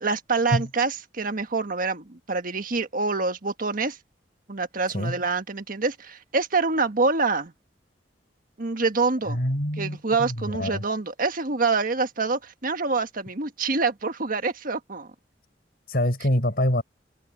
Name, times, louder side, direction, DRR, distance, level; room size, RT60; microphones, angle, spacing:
voice 1, 0.0-4.0 4.5-7.5 8.6-9.4 9.8-15.1, right 4 dB, 50° right, 1.5 m, -26 dB
voice 2, 9.3-10.8 15.9-16.8, left 1 dB, 55° left, 6.7 m, -25 dB
head